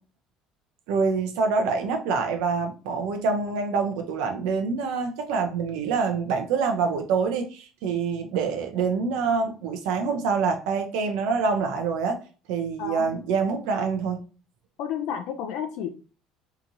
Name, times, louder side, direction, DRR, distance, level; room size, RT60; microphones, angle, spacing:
voice 1, 0.9-12.2 12.5-14.2, right 5 dB, 75° right, 0.4 m, -26 dB
voice 2, 12.8-13.2 14.8-15.9, left 8 dB, 70° left, 0.3 m, -31 dB
2.8 x 2.5 x 2.6 m
hypercardioid pair, 70°, 0 cm